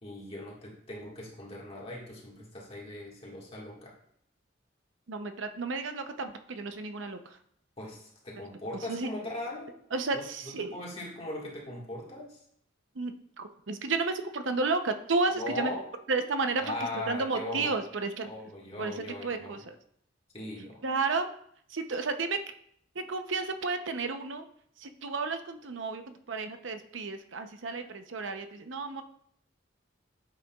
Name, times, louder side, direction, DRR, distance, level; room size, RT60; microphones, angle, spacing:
voice 1, 0.0-3.9 7.8-9.8 10.1-12.4 15.4-15.8 16.6-17.7 18.2-19.6 20.3-20.8, left 1 dB, 30° left, -3 dB, 1.7 m, -39 dB
voice 2, 5.1-7.4 8.4-8.5 8.7-9.1 9.9-10.8 12.9-15.7 16.1-18.3 18.8-19.8 20.8-21.3 21.7-22.4 22.9-24.4 24.8-29.0, right 3 dB, 75° right, 7 dB, 0.7 m, -32 dB
9.7 x 8.1 x 2.3 m, 0.67 s
head